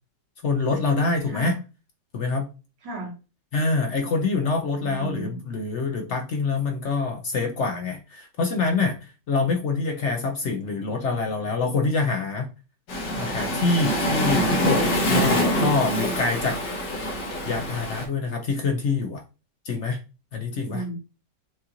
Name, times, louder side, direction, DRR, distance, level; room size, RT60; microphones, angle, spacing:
voice 1, 0.4-1.6 2.1-2.5 3.5-9.0 9.3-12.5 13.2-16.6 17.4-19.2 19.6-20.0 20.3-20.8, left 3 dB, 60° left, 0.7 m, -25 dB
voice 2, 1.3-1.6 2.8-3.1 4.8-5.4 15.3-15.7 20.6-21.0, right 1 dB, 80° right, 2.2 m, -31 dB
Waves surf, 12.9-18.1, equal, 80° left, 1.8 m, -25 dB
6.2 x 2.5 x 2.9 m
omnidirectional pair, 1.9 m